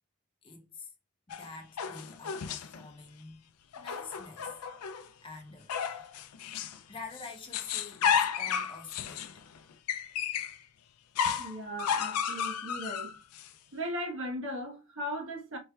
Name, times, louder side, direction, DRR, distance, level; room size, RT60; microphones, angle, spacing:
voice 1, 0.4-0.9 1.3-3.4 3.8-4.6 5.2-6.2 6.9-9.5, left 4 dB, 25° left, 0.6 m, -47 dB
sound 1, 1.3-2.8 3.7-5.1 5.7-6.8 7.1-10.6 11.2-13.5, left 7 dB, 90° left, 0.4 m, -33 dB
voice 2, 11.3-13.1 13.7-15.6, equal, 55° right, 1.0 m, -37 dB
4.4 x 3.1 x 2.2 m
head